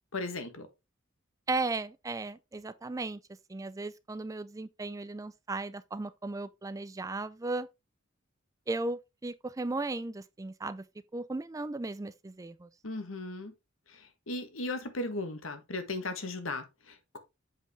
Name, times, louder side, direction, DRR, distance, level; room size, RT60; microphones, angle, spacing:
voice 1, 0.1-0.7 12.8-13.5 14.3-17.2, left 2 dB, 80° left, 1.4 m, -36 dB
voice 2, 1.5-3.2 3.5-7.7 8.7-10.9 11.1-12.7, right 2 dB, 15° right, 0.4 m, -36 dB
7.7 x 5.2 x 3.5 m
head